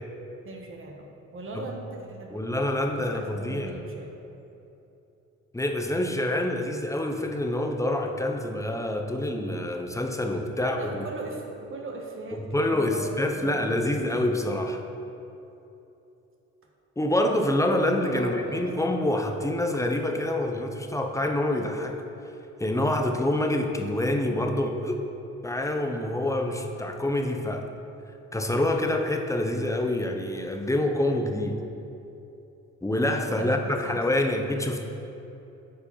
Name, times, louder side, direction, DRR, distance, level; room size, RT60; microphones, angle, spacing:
voice 1, 0.4-1.1 1.3-4.1 10.5-14.0 18.1-18.8 33.3-33.6 33.8-34.0, right 2 dB, 45° right, 1 dB, 1.2 m, -39 dB
voice 2, 2.3-3.7 5.5-11.1 12.5-14.8 17.0-22.0 22.6-25.0 25.4-27.7 28.3-31.6 32.8-34.8, left 1 dB, 10° left, 3 dB, 0.8 m, -26 dB
8.9 x 4.7 x 5.6 m, 2.9 s
cardioid pair, 90°, 30 cm